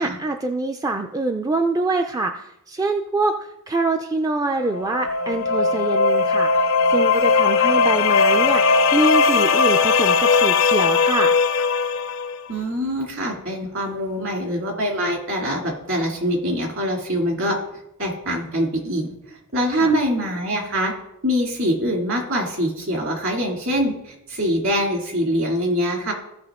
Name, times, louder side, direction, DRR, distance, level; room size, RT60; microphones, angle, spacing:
voice 1, 0.0-11.4 19.7-19.9, right 2 dB, 15° right, 5 dB, 0.4 m, -25 dB
sound 1, 4.6-12.3, left 4 dB, 65° left, 0.6 m, -18 dB
voice 2, 12.5-17.6 18.0-19.1 19.5-20.9 21.2-26.1, equal, 60° right, 1 dB, 2.3 m, -24 dB
15.5 x 5.1 x 3.6 m, 0.83 s
head